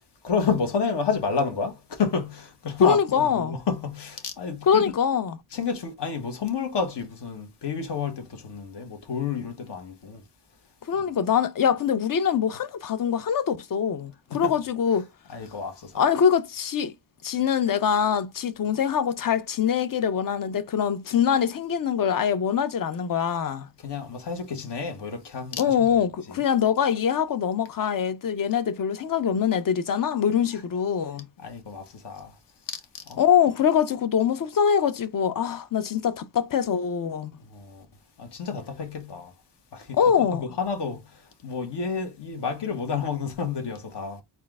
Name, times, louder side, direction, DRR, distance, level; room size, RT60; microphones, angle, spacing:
voice 1, 0.2-4.8 5.5-10.2 14.3-14.6 15.3-16.0 23.8-25.9 26.3-26.4 31.4-32.4 32.9-33.2 37.4-37.9 38.2-39.3 39.7-40.0 40.4-44.2, left 5 dB, 65° left, 1.1 m, -30 dB
voice 2, 2.8-3.5 4.6-5.4 10.9-15.1 15.9-16.9 17.2-23.7 25.6-31.3 33.2-37.3 39.9-40.4, left 8 dB, 50° left, 0.5 m, -23 dB
4.3 x 2.5 x 3.5 m
wide cardioid pair, 100°, 45 cm